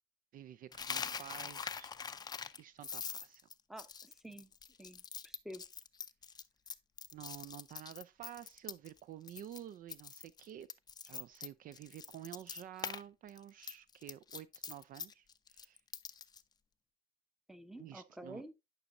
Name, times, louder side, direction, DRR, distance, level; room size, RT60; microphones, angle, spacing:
voice 1, 0.3-1.9 2.6-3.4 7.1-10.7 11.0-15.8 17.8-18.4, right 11 dB, 55° right, 0.4 m, -50 dB
Coin (dropping), 0.7-9.0 9.3-9.6 9.9-13.0 13.3-16.4, left 6 dB, 25° left, 0.4 m, -44 dB
voice 2, 3.7-4.5 4.8-5.6 17.5-18.5, right 1 dB, ahead, 0.8 m, -50 dB
9.9 x 5.3 x 2.5 m
cardioid pair, 110°, 17 cm